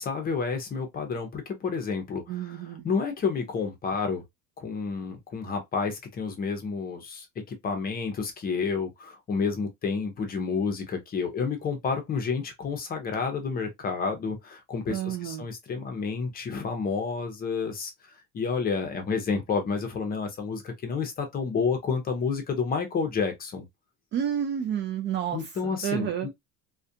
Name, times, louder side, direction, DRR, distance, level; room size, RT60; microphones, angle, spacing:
voice 1, 0.0-4.2 4.6-23.7 25.3-26.3, left 5 dB, 25° left, 0.6 m, -30 dB
voice 2, 2.3-2.9 14.9-15.5 24.1-26.3, right 9 dB, 35° right, 0.4 m, -30 dB
2.4 x 2.2 x 2.6 m
cardioid pair, 155°, 34 cm